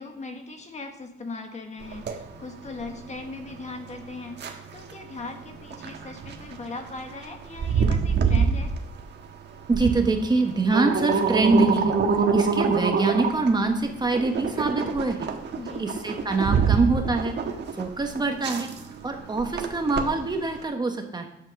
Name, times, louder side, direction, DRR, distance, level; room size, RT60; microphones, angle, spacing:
voice 1, 0.0-8.7 15.6-15.9, left 3 dB, 35° left, 4 dB, 1.5 m, -39 dB
sound 1, 1.8-20.6, right 5 dB, 60° right, 1.4 m, -27 dB
voice 2, 9.7-12.0 12.3-15.3 15.8-17.3 17.7-18.7 19.0-21.3, right 3 dB, 20° right, 4 dB, 1.2 m, -24 dB
11.5 x 7.2 x 6.4 m, 0.85 s
wide cardioid pair, 160°, 20 cm